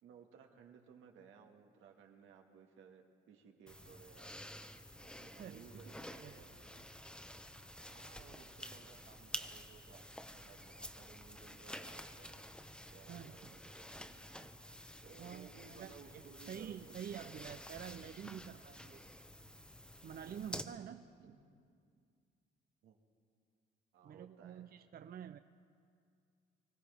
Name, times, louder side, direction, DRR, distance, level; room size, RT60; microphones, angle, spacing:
voice 1, 0.0-4.3 5.0-6.9 7.9-12.5 12.9-14.1 14.4-14.5 15.0-17.8 20.3-20.6 21.2-21.4 22.8-23.0 23.9-24.6, right 6 dB, 85° right, 3 dB, 1.7 m, -60 dB
sound 1, 3.7-20.6, equal, 5° left, 0.9 m, -50 dB
voice 2, 5.4-5.9 6.2-6.4 13.1-13.5 15.2-19.0 20.0-21.1 24.0-25.4, right 9 dB, 50° right, 9 dB, 0.5 m, -48 dB
24.5 x 15.5 x 3.5 m, 2.3 s
cardioid pair, 90°, 20 cm